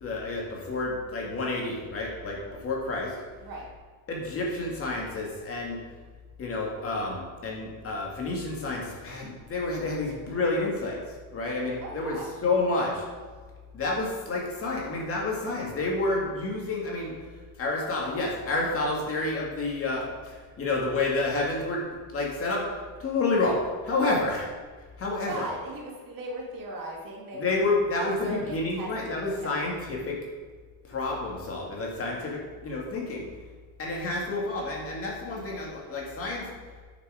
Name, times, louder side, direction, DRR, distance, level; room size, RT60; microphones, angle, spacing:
voice 1, 0.0-3.1 4.1-5.8 6.4-11.0 11.3-13.0 13.7-17.2 17.6-22.7 23.0-24.5 25.0-25.5 27.3-30.2 30.9-33.3 33.8-36.5, left 2 dB, 35° left, -2 dB, 2.2 m, -29 dB
voice 2, 3.4-3.7 11.8-12.3 24.0-24.1 25.3-27.7 28.0-29.6, right 2 dB, 55° right, -2 dB, 2.6 m, -38 dB
10.0 x 6.6 x 5.1 m, 1.5 s
cardioid pair, 160°, 40 cm